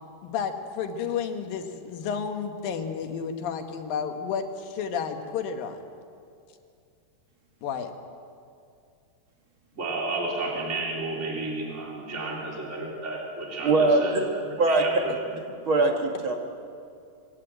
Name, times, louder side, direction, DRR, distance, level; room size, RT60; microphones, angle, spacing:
voice 1, 0.2-5.8 7.6-7.9, left 6 dB, 85° left, 6 dB, 3.1 m, -31 dB
voice 2, 9.8-14.1 14.7-15.1, right 2 dB, 20° right, -3 dB, 3.5 m, -32 dB
voice 3, 13.6-14.2 14.6-14.8 15.6-16.4, right 2 dB, 45° right, 3 dB, 1.9 m, -21 dB
22.5 x 16.0 x 9.0 m, 2.4 s
omnidirectional pair, 3.9 m